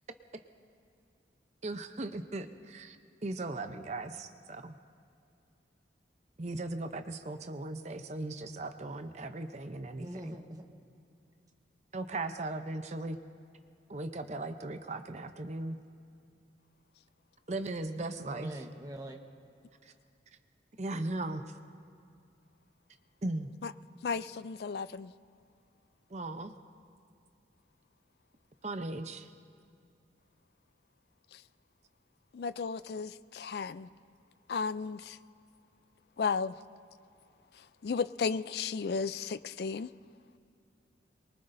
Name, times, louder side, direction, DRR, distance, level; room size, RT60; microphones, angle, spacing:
voice 1, 1.6-3.0 3.2-4.7 6.4-10.4 11.9-13.2 13.9-15.8 17.5-18.6 19.8-19.9 20.8-21.4 23.2-23.5 26.1-26.5 28.6-29.3, right 2 dB, 40° right, 0.7 m, -38 dB
voice 2, 10.0-10.6 18.3-19.2, right 1 dB, 20° right, 1.1 m, -43 dB
voice 3, 24.0-25.1 32.3-33.9 34.5-35.2 36.2-36.5 37.8-39.9, left 5 dB, 60° left, 0.4 m, -34 dB
23.5 x 23.0 x 2.6 m
head